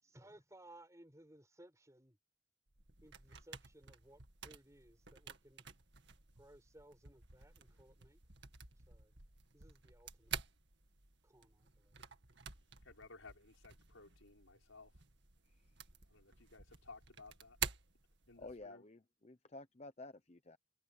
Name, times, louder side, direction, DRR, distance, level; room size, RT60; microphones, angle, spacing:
voice 1, 0.0-2.2 3.0-5.6 6.4-8.2 8.9-9.1 9.5-10.4 11.2-12.0, right 1 dB, 15° right, 6.4 m, -61 dB
sound 1, 2.7-18.7, right 7 dB, 55° right, 2.2 m, -50 dB
voice 2, 12.8-15.0 16.1-17.6 18.3-18.8, left 3 dB, 75° left, 5.2 m, -58 dB
voice 3, 18.4-20.6, left 2 dB, 30° left, 0.8 m, -52 dB
head